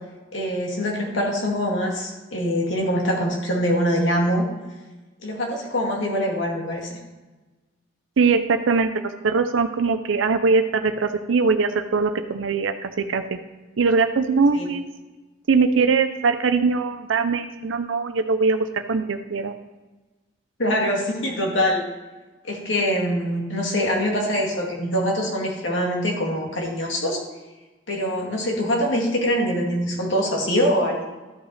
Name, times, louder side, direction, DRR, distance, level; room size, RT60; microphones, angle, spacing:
voice 1, 0.3-4.5 5.2-6.9 14.5-14.7 20.6-21.8 22.4-27.2 27.9-31.0, equal, 80° left, -1 dB, 2.2 m, -24 dB
voice 2, 8.2-13.2 13.8-14.9 15.5-19.5, right 4 dB, 90° right, 8 dB, 0.5 m, -21 dB
12.5 x 5.7 x 4.1 m, 1.2 s
head